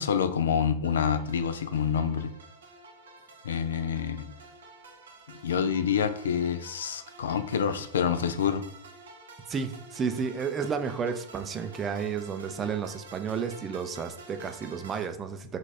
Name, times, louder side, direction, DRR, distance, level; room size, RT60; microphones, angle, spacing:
voice 1, 0.0-2.3 3.4-4.3 5.4-8.6, left 7 dB, 65° left, 10 dB, 0.3 m, -27 dB
sound 1, 0.8-15.1, right 2 dB, 65° right, 0.7 m, -49 dB
voice 2, 9.5-15.6, right 6 dB, 25° right, 7 dB, 0.4 m, -32 dB
3.9 x 2.4 x 4.2 m, 0.67 s
figure-of-eight pair, 90°, 0 cm